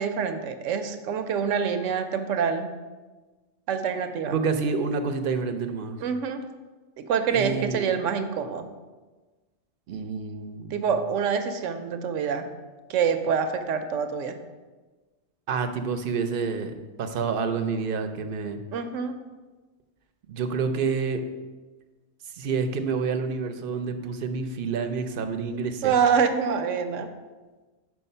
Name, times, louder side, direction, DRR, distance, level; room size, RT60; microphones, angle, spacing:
voice 1, 0.0-2.7 3.7-4.3 6.0-6.4 7.0-8.7 10.7-12.5 12.9-14.4 18.7-19.2 25.8-27.1, right 6 dB, 85° right, 8 dB, 0.9 m, -26 dB
voice 2, 4.3-6.0 7.3-7.9 9.9-10.8 15.5-16.7 17.0-18.6 20.3-21.2 22.3-25.9, right 5 dB, 60° right, 7 dB, 0.6 m, -28 dB
5.5 x 4.6 x 5.5 m, 1.3 s
omnidirectional pair, 1.3 m